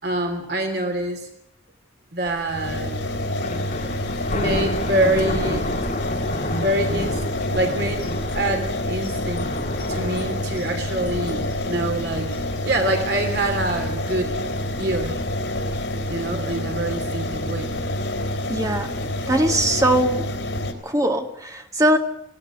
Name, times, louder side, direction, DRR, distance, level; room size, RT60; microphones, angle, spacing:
voice 1, 0.0-1.3 2.1-3.0 3.7-5.7 6.5-9.5 9.9-12.3 12.6-14.3 14.8-15.2 16.1-17.8, right 1 dB, 60° right, 4 dB, 3.3 m, -25 dB
Thunder, 2.3-20.0, left 1 dB, 45° left, 2.5 m, -33 dB
sound 1, 2.5-20.7, left 1 dB, 85° left, 3.6 m, -28 dB
voice 2, 18.5-19.0 19.3-20.3 20.8-22.0, right 1 dB, 20° right, 4 dB, 2.0 m, -21 dB
19.5 x 17.5 x 8.1 m, 0.73 s
head